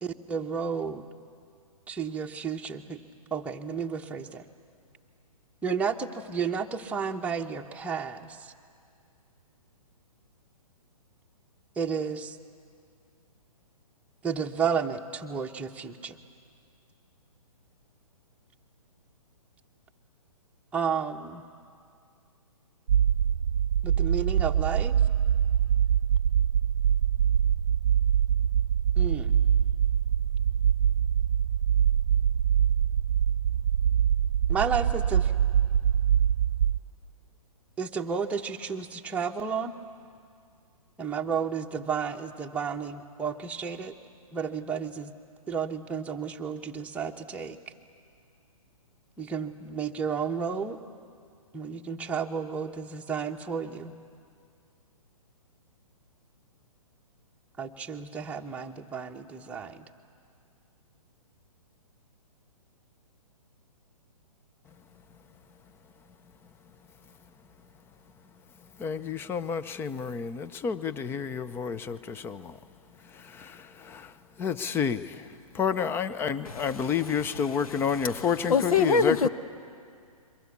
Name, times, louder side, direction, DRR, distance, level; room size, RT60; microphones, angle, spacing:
voice 1, 0.0-1.0 1.9-3.0 3.3-4.4 5.6-8.5 11.8-12.4 14.2-16.2 20.7-21.4 23.8-25.0 29.0-29.4 34.5-35.3 37.8-39.7 41.0-43.9 44.3-45.1 45.5-47.6 49.2-50.8 51.5-53.9 57.6-59.8, right 6 dB, 5° right, 1.0 m, -32 dB
sound 1, 22.9-36.8, right 9 dB, 65° right, 0.6 m, -24 dB
voice 2, 68.8-72.6 73.0-79.3, left 6 dB, 10° left, 0.6 m, -30 dB
voice 3, 78.5-79.3, left 5 dB, 70° left, 1.3 m, -22 dB
29.0 x 23.0 x 8.4 m
hypercardioid pair, 135°, 19 cm